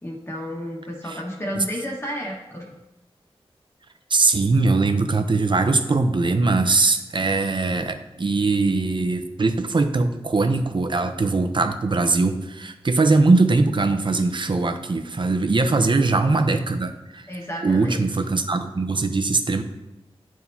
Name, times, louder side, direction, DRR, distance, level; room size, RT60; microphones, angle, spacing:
voice 1, 0.0-2.7 15.5-15.8 17.3-18.1, equal, 25° left, -2 dB, 1.4 m, -32 dB
voice 2, 4.1-17.3 17.6-19.6, right 3 dB, 50° right, 8 dB, 0.6 m, -21 dB
10.5 x 4.6 x 2.7 m, 0.97 s
wide cardioid pair, 65°, 11 cm